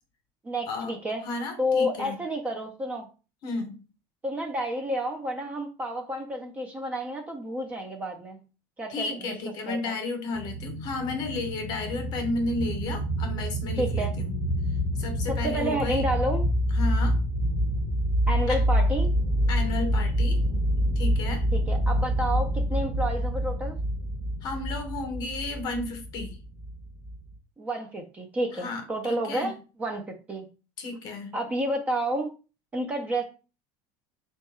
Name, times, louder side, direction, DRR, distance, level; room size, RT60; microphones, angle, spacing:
voice 1, 0.4-1.2 1.6-3.1 4.2-8.4 8.8-9.3 9.7-9.9 13.8-14.1 15.3-16.4 18.3-19.1 21.5-23.8 27.6-29.5 29.8-30.0 30.3-30.5 31.3-32.3 32.7-33.2, equal, 15° right, 3 dB, 0.4 m, -30 dB
voice 2, 1.2-2.2 3.4-3.8 8.9-14.4 15.0-16.1 16.7-17.2 18.5-18.6 19.5-20.4 21.0-21.4 24.4-26.4 28.5-29.5 30.8-31.3, left 3 dB, 40° left, 7 dB, 0.8 m, -33 dB
sound 1, 10.3-27.4, equal, 35° right, 0.8 m, -27 dB
3.6 x 2.3 x 4.2 m, 0.34 s
cardioid pair, 165°, 11 cm